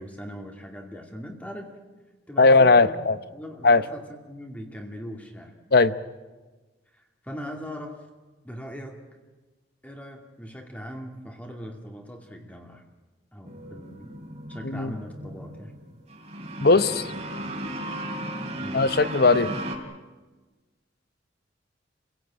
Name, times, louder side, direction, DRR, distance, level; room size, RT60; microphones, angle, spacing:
voice 1, 0.0-1.7 2.3-3.0 3.3-5.5 6.9-8.1 8.4-9.0 9.8-12.8 13.3-14.1 14.5-15.7 16.7-17.2 18.5-18.9, equal, 10° left, 2 dB, 2.4 m, -40 dB
voice 2, 2.4-3.2 3.6-3.8 5.7-5.9 14.6-15.0 16.6-17.0 18.7-19.5, left 3 dB, 55° left, 14 dB, 0.9 m, -18 dB
sound 1, 13.4-19.8, right 1 dB, 40° right, 3.1 m, -35 dB
29.0 x 17.0 x 8.9 m, 1.2 s
head